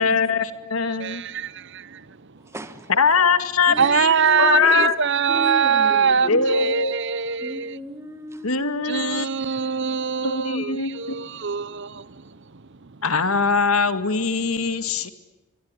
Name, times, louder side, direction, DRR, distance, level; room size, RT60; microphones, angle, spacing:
voice 1, 0.0-1.2 2.9-4.1 4.4-5.0 6.3-7.1 8.4-9.7 10.2-11.2 13.0-15.1, left 4 dB, 75° left, 2.2 m, -22 dB
voice 2, 1.0-2.0 3.8-7.8 8.9-12.1, right 6 dB, 55° right, 0.9 m, -23 dB
voice 3, 2.4-2.9 3.7-3.9 4.2-4.9 5.3-6.7 7.4-8.5, right 1 dB, 10° right, 1.5 m, -34 dB
25.0 x 23.0 x 9.8 m
head